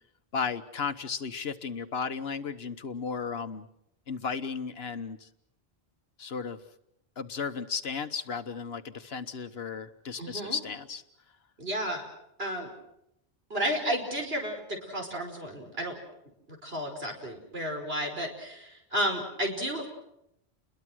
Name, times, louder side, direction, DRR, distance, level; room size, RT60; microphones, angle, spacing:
voice 1, 0.3-3.7 4.1-5.3 6.2-6.6 7.2-11.0, left 5 dB, 75° left, 11 dB, 1.4 m, -34 dB
voice 2, 10.2-10.6 11.6-12.0 12.4-12.7 13.5-15.9 16.5-19.9, equal, 70° right, 3 dB, 5.5 m, -32 dB
29.5 x 21.5 x 6.3 m, 0.81 s
omnidirectional pair, 1.1 m